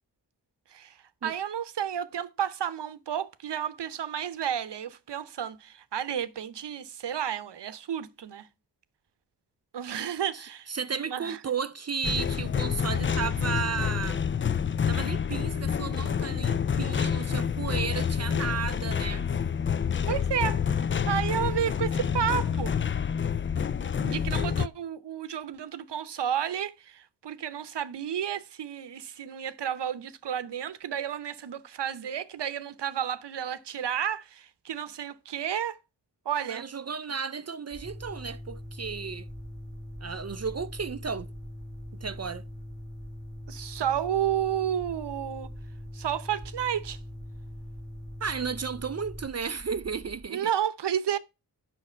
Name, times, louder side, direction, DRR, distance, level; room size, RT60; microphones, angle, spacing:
voice 1, 1.2-8.5 9.7-11.4 20.1-20.8 21.1-22.8 24.0-35.8 36.2-36.7 43.5-45.5 45.9-47.0 50.3-51.2, right 9 dB, 80° right, 0.8 m, -31 dB
voice 2, 10.3-14.2 14.9-19.3 36.5-39.3 40.0-41.3 42.0-42.4 48.2-50.5, right 6 dB, 40° right, 0.5 m, -34 dB
sound 1, 12.0-24.7, left 7 dB, 30° left, 0.4 m, -28 dB
sound 2, 37.7-50.3, right 1 dB, 10° right, 1.5 m, -48 dB
sound 3, 37.8-49.2, left 1 dB, 15° left, 2.0 m, -43 dB
8.3 x 6.1 x 4.3 m
cardioid pair, 65°, 41 cm